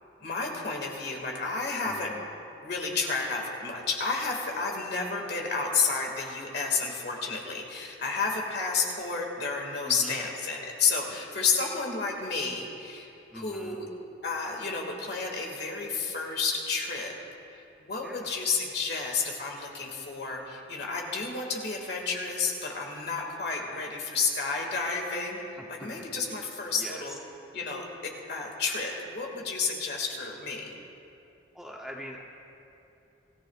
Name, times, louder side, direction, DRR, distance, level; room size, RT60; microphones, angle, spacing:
voice 1, 0.2-2.1 2.6-13.8 14.2-17.1 17.5-27.2 27.5-27.8 28.3-30.8, left 4 dB, 55° left, 0 dB, 2.0 m, -31 dB
voice 2, 9.8-10.2 13.3-13.8 18.0-18.3 23.5-23.9 25.6-25.9 26.7-27.2 31.5-32.2, equal, ahead, -1 dB, 0.7 m, -43 dB
24.5 x 15.0 x 2.4 m, 2.8 s
head